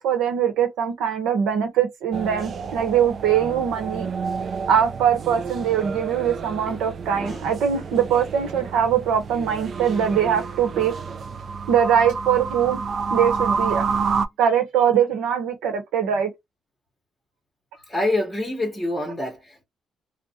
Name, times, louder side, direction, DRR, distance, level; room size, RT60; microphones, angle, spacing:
voice 1, 0.0-4.1 4.7-10.9 11.7-12.8 13.1-13.9 14.4-16.3, right 8 dB, 90° right, 0.8 m, -22 dB
sound 1, 2.1-14.3, right 5 dB, 50° right, 0.3 m, -29 dB
voice 2, 7.1-7.4 17.9-19.6, left 1 dB, 10° left, 0.9 m, -27 dB
2.4 x 2.1 x 2.6 m
cardioid pair, 90°, 0 cm